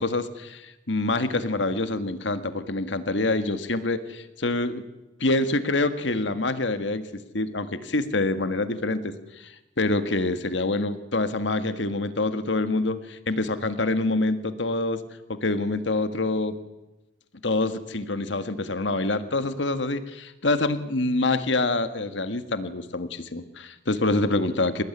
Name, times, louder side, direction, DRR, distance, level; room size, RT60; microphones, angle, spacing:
voice 1, 0.0-4.8 5.2-7.1 7.3-15.0 15.3-16.6 17.4-24.8, left 2 dB, 70° left, 11 dB, 1.7 m, -26 dB
27.5 x 18.5 x 9.9 m, 0.99 s
head